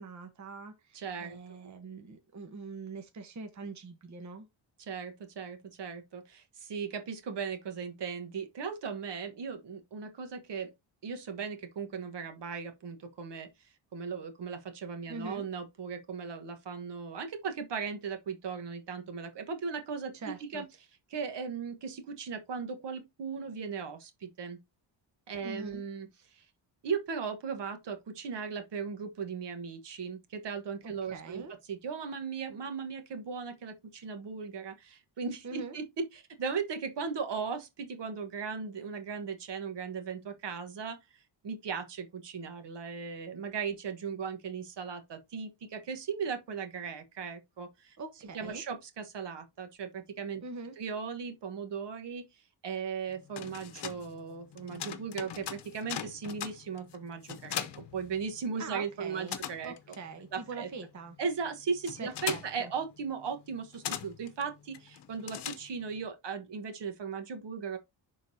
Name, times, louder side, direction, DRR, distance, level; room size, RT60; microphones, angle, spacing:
voice 1, 0.0-4.5 15.1-15.5 20.1-20.6 25.4-25.8 30.8-31.6 35.4-35.8 48.0-48.6 50.4-50.8 58.6-61.2 62.0-62.7, right 4 dB, 35° right, 1.1 m, -43 dB
voice 2, 0.9-1.4 1.6-1.7 4.8-10.7 11.0-13.5 13.9-20.6 21.1-24.6 25.3-26.4 26.8-31.4 31.7-41.0 41.4-48.0 48.3-50.4 50.8-52.3 52.6-59.7 60.3-60.7 61.2-67.8, right 5 dB, 60° right, 1.4 m, -37 dB
sound 1, 53.1-58.7 59.0-66.1, left 9 dB, 55° left, 0.9 m, -41 dB
11.0 x 3.9 x 2.7 m
cardioid pair, 120°, 48 cm